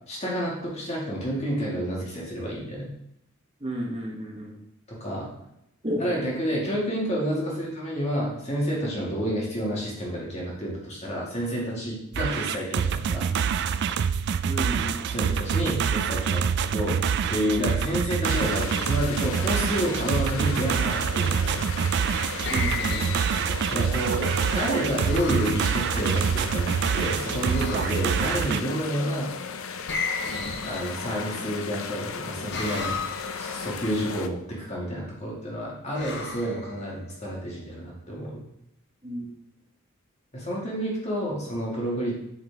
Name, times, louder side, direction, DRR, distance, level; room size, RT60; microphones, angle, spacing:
voice 1, 0.1-2.9 4.9-5.3 6.0-13.3 15.1-17.0 17.3-22.2 23.7-24.3 24.5-29.3 30.6-33.0 33.4-38.4 40.3-42.3, equal, 30° left, -4 dB, 2.3 m, -29 dB
voice 2, 3.6-4.6 5.8-6.0 14.4-15.1 22.5-23.1 39.0-39.4, equal, 25° right, -2 dB, 1.2 m, -32 dB
sound 1, 12.1-28.6, right 7 dB, 50° right, 0.3 m, -26 dB
sound 2, 18.2-34.3, left 6 dB, 70° left, 0.5 m, -36 dB
sound 3, 22.1-23.8 25.1-25.6 27.5-28.3 29.9-31.3 32.5-33.5 35.9-37.1, left 4 dB, 55° left, 1.0 m, -34 dB
8.7 x 4.8 x 3.6 m, 0.81 s
head